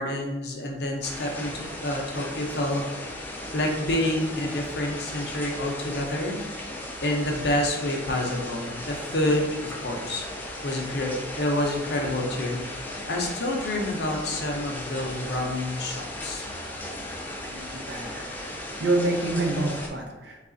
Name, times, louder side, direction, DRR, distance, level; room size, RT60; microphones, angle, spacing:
voice 1, 0.0-2.8 3.2-6.4 7.0-16.4, left 1 dB, 60° left, 1 dB, 0.6 m, -28 dB
sound 1, 1.0-19.9, left 1 dB, 10° left, 0.4 m, -36 dB
voice 2, 17.4-20.4, right 2 dB, 70° right, 2 dB, 0.6 m, -28 dB
3.3 x 2.4 x 3.8 m, 1.2 s
head